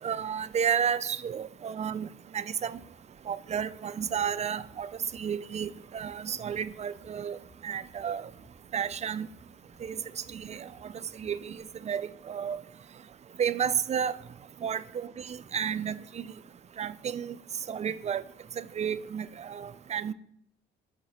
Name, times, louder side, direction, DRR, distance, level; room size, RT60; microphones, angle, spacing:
voice 1, 0.0-2.1 2.3-2.8 3.3-7.4 7.6-8.3 8.7-9.3 9.8-10.0 10.3-10.7 11.2-12.6 13.4-14.2 14.6-16.3 16.8-17.4 17.7-18.2 18.6-20.1, right 8 dB, 35° right, 0.4 m, -32 dB
sound 1, 2.5-11.6, right 1 dB, 30° left, 3.2 m, -60 dB
8.3 x 4.2 x 4.3 m
cardioid pair, 90°, 20 cm